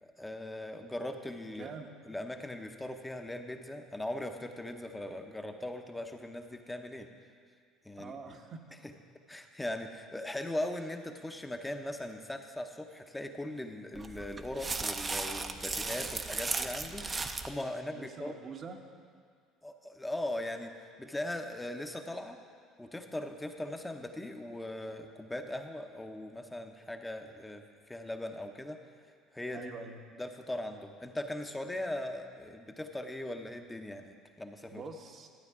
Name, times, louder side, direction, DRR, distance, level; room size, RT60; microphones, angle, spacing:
voice 1, 0.0-1.7 2.1-7.1 7.8-8.4 8.8-8.9 9.3-18.3 19.6-22.4 22.8-28.8 29.3-29.7 30.2-34.8, left 1 dB, 10° left, 5 dB, 0.7 m, -39 dB
voice 2, 1.5-1.9 8.0-8.8 9.4-9.5 17.9-18.8 29.5-30.0 34.7-35.3, right 5 dB, 45° right, 5 dB, 0.9 m, -45 dB
sound 1, 13.9-17.5, right 3 dB, 25° right, 0.6 m, -36 dB
12.0 x 8.8 x 3.6 m, 2.1 s
hypercardioid pair, 75°, 0 cm